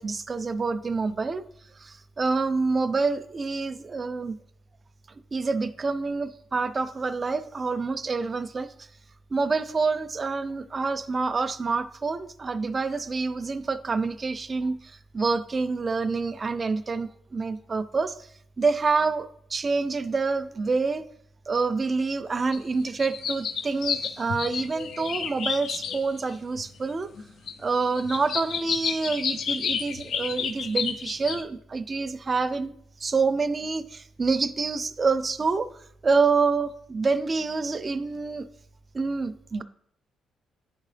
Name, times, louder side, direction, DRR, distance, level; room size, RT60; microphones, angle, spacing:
voice 1, 0.0-1.4 1.8-4.4 5.3-8.7 9.3-14.8 15.1-18.1 18.6-21.0 21.5-27.1 27.6-32.7 33.0-35.7 36.0-38.5 38.9-39.6, right 4 dB, 35° right, 13 dB, 0.4 m, -27 dB
sound 1, 22.5-22.6 22.9-26.3 26.6-26.7 27.2-27.5 27.9-31.4, left 7 dB, 65° left, 0.5 m, -31 dB
10.0 x 3.8 x 3.3 m, 0.68 s
cardioid pair, 90°, 0 cm